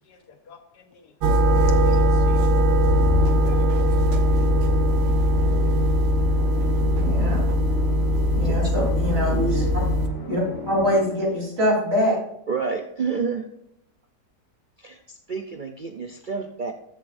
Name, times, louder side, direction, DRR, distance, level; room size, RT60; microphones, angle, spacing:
voice 1, 0.5-1.0 1.6-2.5 3.2-4.2, left 5 dB, 80° left, 1.6 m, -46 dB
sound 1, 1.2-10.1, equal, 90° right, 1.4 m, -20 dB
Musical instrument, 2.9-11.4, left 4 dB, 40° left, 1.7 m, -34 dB
voice 2, 7.0-7.4 8.4-9.6 10.3-12.2, equal, 35° right, 4.1 m, -24 dB
voice 3, 12.5-13.5 14.8-15.0 15.3-16.7, right 5 dB, 65° right, 0.5 m, -28 dB
14.0 x 7.3 x 2.6 m
omnidirectional pair, 1.7 m